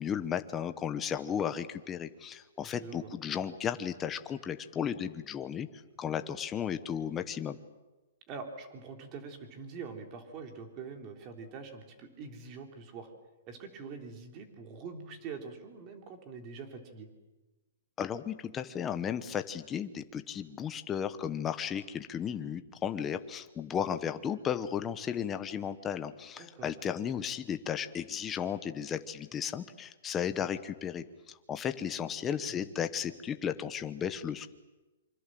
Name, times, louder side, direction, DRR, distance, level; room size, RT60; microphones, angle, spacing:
voice 1, 0.0-5.7 6.0-7.6 18.0-34.5, left 8 dB, 15° left, 9 dB, 1.0 m, -34 dB
voice 2, 2.6-3.1 8.3-13.1 13.5-17.1 26.4-26.7 32.0-32.5, right 5 dB, 25° right, 4 dB, 3.4 m, -44 dB
27.0 x 25.5 x 7.7 m, 1.1 s
hypercardioid pair, 170°, 0 cm